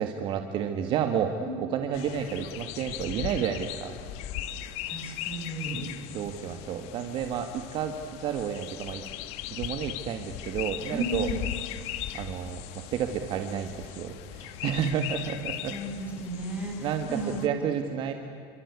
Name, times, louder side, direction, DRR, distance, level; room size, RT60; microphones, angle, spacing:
voice 1, 0.0-1.3 1.6-4.0 6.1-9.0 9.5-11.3 12.1-15.7 16.5-18.1, right 8 dB, 45° right, 6 dB, 1.8 m, -31 dB
sound 1, 1.9-17.5, left 12 dB, 60° left, 1.5 m, -38 dB
voice 2, 4.9-5.9 10.9-11.4 15.7-17.5, right 2 dB, 10° right, 0 dB, 6.8 m, -34 dB
29.0 x 24.5 x 8.4 m, 2.7 s
cardioid pair, 155°, 12 cm